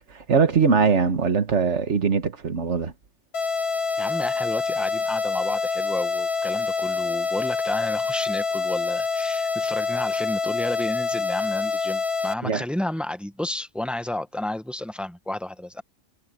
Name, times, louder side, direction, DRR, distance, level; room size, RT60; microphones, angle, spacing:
voice 1, 0.0-2.9 12.4-12.6, right 5 dB, 75° right, 1.8 m, -21 dB
sound 1, 3.3-12.3, left 4 dB, 60° left, 1.3 m, -26 dB
voice 2, 4.0-15.8, left 1 dB, ahead, 0.8 m, -31 dB
omnidirectional pair, 1.2 m